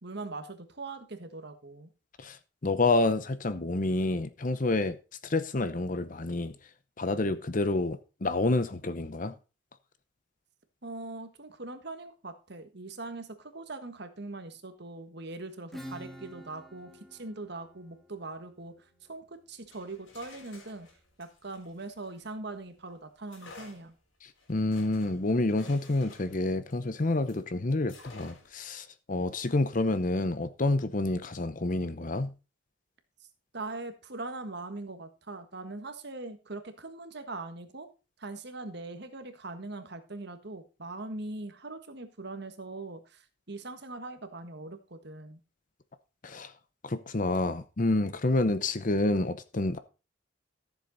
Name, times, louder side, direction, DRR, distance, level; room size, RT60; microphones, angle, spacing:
voice 1, 0.0-1.9 10.8-20.9 21.2-23.9 33.2-33.3 33.5-37.9 38.2-45.4, right 2 dB, 55° right, 1.5 m, -41 dB
voice 2, 2.2-5.0 5.2-6.6 7.0-9.3 24.2-32.3 46.2-46.5 46.8-49.8, left 2 dB, 40° left, 0.7 m, -28 dB
Acoustic guitar / Strum, 15.7-21.1, equal, ahead, 1.6 m, -49 dB
sound 1, 19.6-22.6 23.3-27.5 27.9-28.7, left 3 dB, 75° left, 3.9 m, -53 dB
14.0 x 7.3 x 4.0 m
head